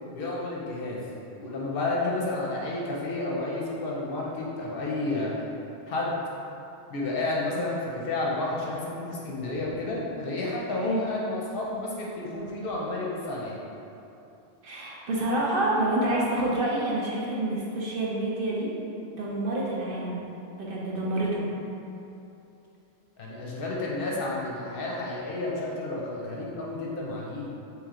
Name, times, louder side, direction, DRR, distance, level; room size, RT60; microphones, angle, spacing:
voice 1, 0.1-1.0 1.3-5.3 5.9-6.2 6.9-13.6 23.2-27.5, left 2 dB, 60° left, -4 dB, 0.7 m, -31 dB
voice 2, 14.6-18.7 19.2-20.2 20.6-21.5, right 1 dB, 60° right, -5 dB, 0.7 m, -28 dB
3.2 x 3.1 x 3.7 m, 2.8 s
omnidirectional pair, 1.2 m